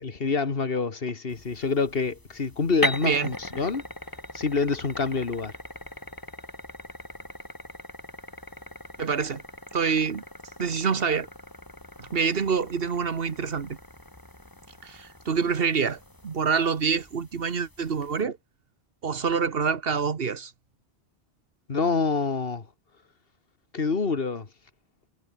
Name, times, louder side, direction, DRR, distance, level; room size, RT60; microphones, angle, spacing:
voice 1, 0.0-3.9 4.3-5.5 21.7-22.7 23.7-24.5, left 4 dB, 60° left, 2.0 m, -27 dB
sound 1, 1.3-18.2, left 1 dB, 20° left, 2.7 m, -40 dB
voice 2, 9.0-9.4 9.7-10.2 10.6-11.3 12.0-13.8 14.8-18.4 19.0-20.5, right 6 dB, 60° right, 1.5 m, -26 dB
omnidirectional pair, 1.1 m